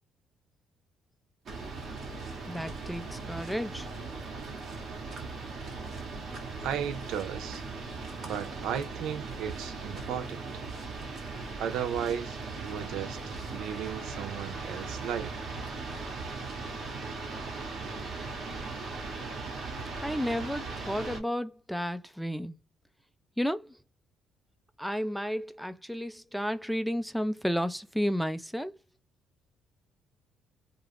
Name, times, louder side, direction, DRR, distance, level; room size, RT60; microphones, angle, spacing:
sound 1, 1.5-21.2, right 3 dB, 55° right, 1.1 m, -39 dB
voice 1, 2.5-3.9 20.0-22.6 23.4-23.8 24.8-28.8, equal, ahead, 0.4 m, -32 dB
voice 2, 6.6-7.6 8.2-10.6 11.6-15.5 18.9-19.1, right 9 dB, 75° right, 0.4 m, -35 dB
2.4 x 2.3 x 3.3 m
supercardioid pair, 65°, 0 cm